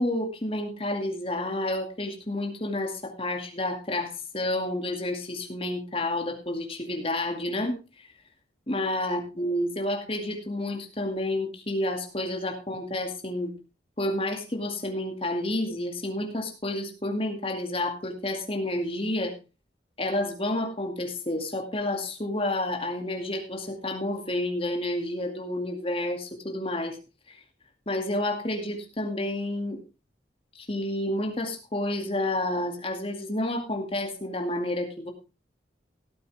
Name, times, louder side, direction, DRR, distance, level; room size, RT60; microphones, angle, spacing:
voice 1, 0.0-8.1 8.7-13.5 14.0-19.3 20.0-27.0 27.3-27.4 27.9-29.8 30.6-35.1, left 1 dB, 30° left, 3 dB, 2.3 m, -30 dB
17.5 x 8.6 x 3.4 m, 0.30 s
head